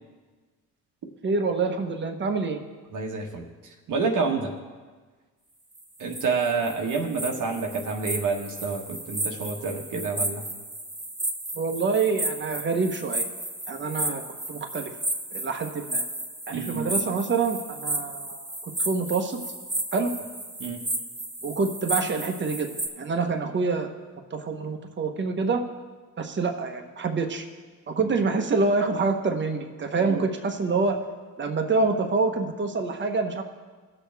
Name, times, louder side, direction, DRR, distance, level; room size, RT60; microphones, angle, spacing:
voice 1, 1.2-2.6 11.5-13.2 13.7-14.2 14.5-14.9 15.3-16.0 16.5-19.4 19.9-20.1 21.4-22.7 23.0-23.9 24.3-25.6 26.2-27.4 27.9-31.0 31.4-33.4, right 4 dB, 30° right, 4 dB, 1.2 m, -26 dB
voice 2, 2.9-4.5 6.0-10.5 16.5-16.9 20.6-20.8 28.1-28.2 30.0-30.2, right 4 dB, 60° right, 2 dB, 1.4 m, -28 dB
sound 1, 5.8-22.9, right 1 dB, 15° right, 1.7 m, -33 dB
18.5 x 6.6 x 3.5 m, 1.4 s
cardioid pair, 90°, 35 cm